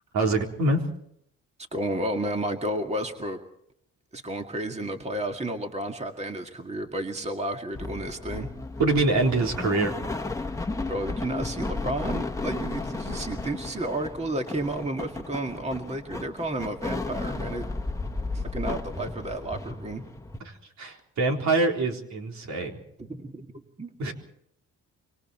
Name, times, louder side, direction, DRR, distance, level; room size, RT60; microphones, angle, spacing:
voice 1, 0.1-0.8 8.8-10.0 20.4-22.8 24.0-24.1, right 2 dB, 65° right, 2 dB, 4.0 m, -25 dB
voice 2, 1.7-3.4 4.1-8.5 10.9-17.7 18.3-20.0 23.1-23.5 23.8-23.9, right 1 dB, 20° right, 4 dB, 2.2 m, -32 dB
sound 1, 7.7-20.4, left 3 dB, 10° left, 1.5 m, -34 dB
25.5 x 24.0 x 4.5 m, 0.72 s
cardioid pair, 90°, 30 cm